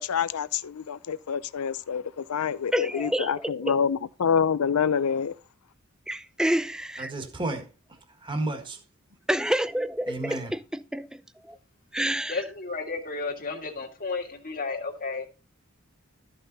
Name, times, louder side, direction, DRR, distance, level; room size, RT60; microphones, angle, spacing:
voice 1, 0.0-5.3, left 7 dB, 80° left, 0.5 m, -27 dB
voice 2, 2.7-3.8 6.1-7.1 9.3-11.6 11.9-12.4, right 1 dB, 5° right, 0.4 m, -29 dB
voice 3, 7.0-8.8 10.1-10.5, right 2 dB, 25° right, 1.6 m, -33 dB
voice 4, 12.3-15.3, left 4 dB, 40° left, 1.8 m, -32 dB
13.0 x 5.6 x 4.0 m
head